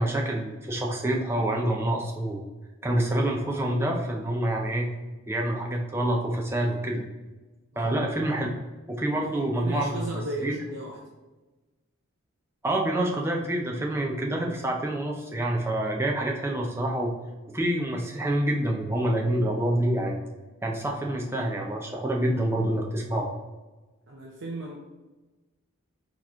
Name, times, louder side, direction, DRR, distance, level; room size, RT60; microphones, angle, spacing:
voice 1, 0.0-2.4 2.8-4.9 5.3-7.0 7.8-8.5 8.9-10.6 12.6-17.1 17.5-20.2 20.6-23.3, right 1 dB, 10° right, -1 dB, 0.6 m, -27 dB
voice 2, 9.3-11.0 24.1-24.8, right 1 dB, 55° right, -3 dB, 0.6 m, -35 dB
4.5 x 3.0 x 3.5 m, 1.2 s
head